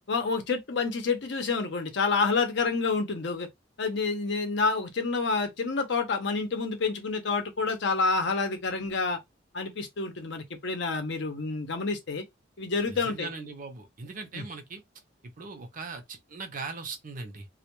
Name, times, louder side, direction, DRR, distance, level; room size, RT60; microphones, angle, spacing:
voice 1, 0.1-3.5 3.8-9.2 9.5-12.2 12.6-13.3 14.3-14.4, left 4 dB, 65° left, 0.6 m, -28 dB
voice 2, 12.9-14.8 15.4-17.5, right 4 dB, 45° right, 0.5 m, -39 dB
2.2 x 2.1 x 2.9 m
head